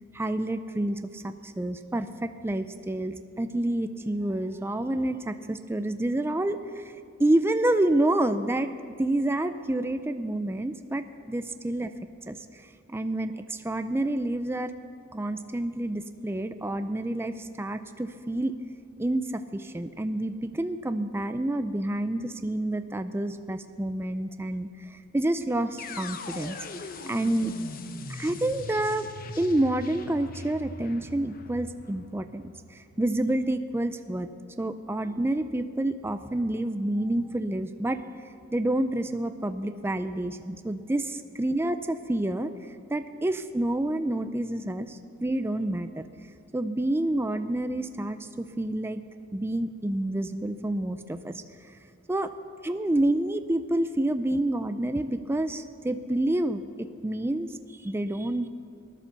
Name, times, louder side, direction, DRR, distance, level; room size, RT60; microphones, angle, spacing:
voice 1, 0.1-6.9 7.2-8.7 9.0-11.9 12.3-14.7 15.1-18.5 19.0-27.5 28.1-29.1 29.4-34.3 34.6-38.0 38.5-42.5 42.9-46.1 46.5-49.0 49.3-51.8 52.1-52.3 52.6-58.5, right 1 dB, 10° right, 9 dB, 0.4 m, -28 dB
sound 1, 25.8-33.7, left 3 dB, 45° left, 0.8 m, -41 dB
17.5 x 11.0 x 6.7 m, 2.3 s
head